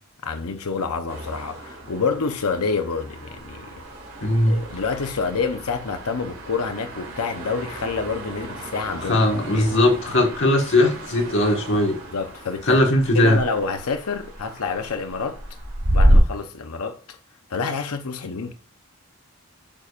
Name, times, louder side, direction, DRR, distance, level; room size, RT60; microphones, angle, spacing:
voice 1, 0.2-3.8 4.4-9.7 12.1-12.8 13.1-15.4 15.9-17.2 17.5-18.5, left 4 dB, 80° left, 0.7 m, -28 dB
sound 1, 1.1-16.2, right 1 dB, 70° right, 2.1 m, -29 dB
voice 2, 4.2-4.6 9.0-12.0 12.7-13.4, left 1 dB, 55° left, 1.5 m, -19 dB
8.9 x 5.0 x 2.4 m
head